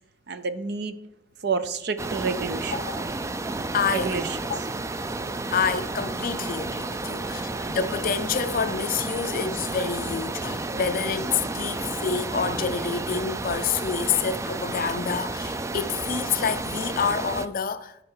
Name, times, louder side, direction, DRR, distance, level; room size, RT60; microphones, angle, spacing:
voice 1, 0.3-1.0 1.4-2.8 3.9-4.4, right 5 dB, 60° right, 0.7 m, -29 dB
sound 1, 2.0-17.5, right 2 dB, 15° right, 0.3 m, -31 dB
voice 2, 2.7-3.0 3.7-4.2 4.5-4.6 5.5-18.0, left 6 dB, 50° left, 0.5 m, -28 dB
11.5 x 5.0 x 4.8 m
head